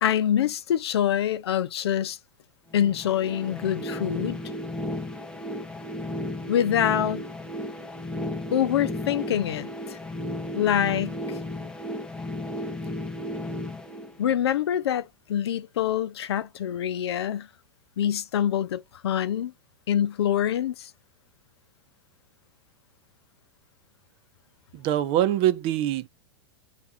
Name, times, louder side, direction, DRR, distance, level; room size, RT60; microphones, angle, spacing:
voice 1, 0.0-2.2 2.7-4.4 6.5-7.2 8.5-10.0 10.5-11.2 14.2-17.5 18.0-19.5 19.9-20.9, left 10 dB, 75° left, 0.6 m, -25 dB
sound 1, 2.7-14.6, left 1 dB, 5° left, 0.6 m, -34 dB
voice 2, 24.7-26.1, right 12 dB, 40° right, 0.5 m, -24 dB
3.4 x 2.5 x 4.0 m
hypercardioid pair, 110°, 14 cm